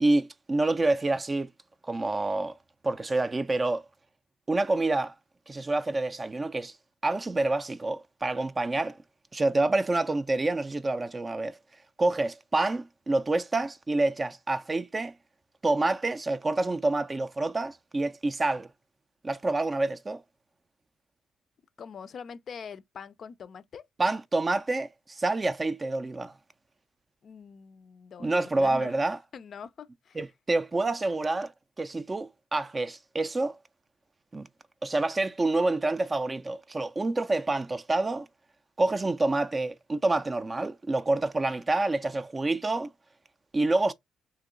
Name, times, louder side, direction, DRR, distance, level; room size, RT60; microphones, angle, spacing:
voice 1, 0.0-1.5 1.8-2.6 2.8-3.8 4.5-5.1 5.5-6.7 7.0-9.0 9.3-11.6 12.0-15.1 15.6-18.7 19.2-20.2 24.0-26.3 28.2-29.2 30.2-31.5 31.8-33.6 34.3-34.5 34.8-38.3 38.8-42.9 43.5-43.9, right 2 dB, 25° right, 0.4 m, -27 dB
voice 2, 21.8-23.8 27.2-29.0 29.3-30.2, left 6 dB, 55° left, 0.4 m, -43 dB
2.9 x 2.9 x 3.7 m
cardioid pair, 90°, 0 cm